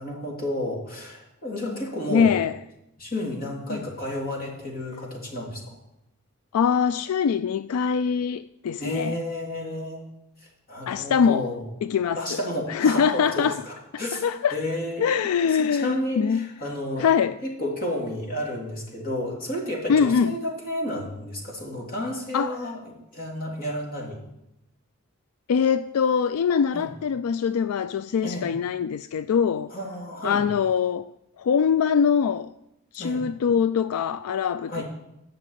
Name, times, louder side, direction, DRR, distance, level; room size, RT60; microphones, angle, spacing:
voice 1, 0.0-2.3 3.0-5.8 8.8-10.0 10.7-11.6 12.1-14.2 14.5-15.1 15.5-17.1 17.4-24.2 26.7-26.9 28.2-28.5 29.7-30.5 33.0-33.2 34.7-34.8, left 1 dB, 40° left, 3.3 m, -31 dB
voice 2, 2.1-2.5 3.7-3.8 6.5-9.1 10.9-11.5 11.8-12.4 12.7-13.6 14.1-14.6 15.0-16.4 17.0-17.4 19.9-20.3 22.3-22.6 25.5-29.7 30.2-31.1 31.4-32.5 32.9-34.8, left 6 dB, 80° left, 0.3 m, -23 dB
10.5 x 6.6 x 9.1 m
head